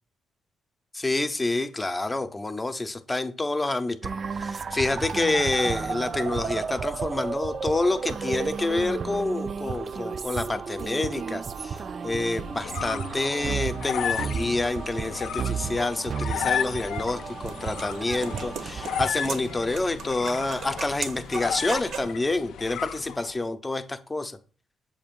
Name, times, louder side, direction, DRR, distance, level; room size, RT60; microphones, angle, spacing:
voice 1, 0.9-4.1 4.4-11.8 12.0-24.4, left 2 dB, 20° left, 9 dB, 0.7 m, -28 dB
sound 1, 4.0-19.1, right 6 dB, 50° right, 0.3 m, -33 dB
sound 2, 12.3-23.4, left 9 dB, 75° left, 0.4 m, -34 dB
sound 3, 16.9-22.2, right 5 dB, 70° right, 0.7 m, -38 dB
7.1 x 2.5 x 5.2 m, 0.39 s
cardioid pair, 70°, 0 cm